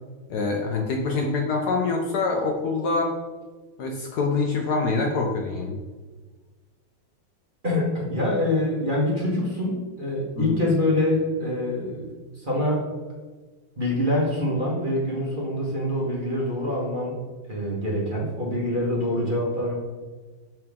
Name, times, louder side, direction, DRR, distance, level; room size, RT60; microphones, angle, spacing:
voice 1, 0.3-3.1 3.8-5.8 10.4-10.6, left 3 dB, 65° left, 1 dB, 1.2 m, -25 dB
voice 2, 7.6-12.8 13.8-17.1 17.5-19.7, left 1 dB, 30° right, -4 dB, 1.2 m, -25 dB
6.2 x 5.8 x 3.6 m, 1.4 s
omnidirectional pair, 2.2 m